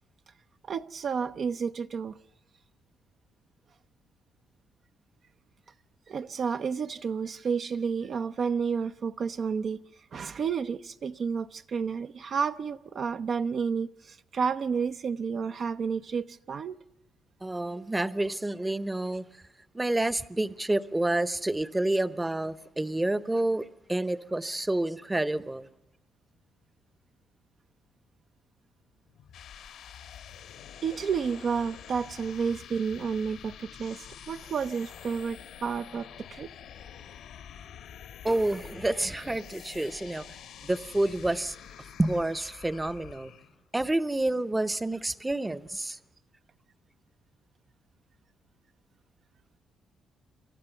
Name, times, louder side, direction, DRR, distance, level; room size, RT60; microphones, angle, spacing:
voice 1, 0.7-2.1 6.1-9.8 10.1-16.8 30.8-36.5, right 6 dB, 55° right, 0.6 m, -31 dB
voice 2, 17.4-19.2 19.7-25.7 38.2-40.4 40.6-41.6 42.0-43.3 43.7-46.0, right 1 dB, 15° right, 0.8 m, -29 dB
sound 1, 29.0-43.6, left 9 dB, 80° left, 1.6 m, -47 dB
28.0 x 13.5 x 7.0 m
cardioid pair, 90°, 0 cm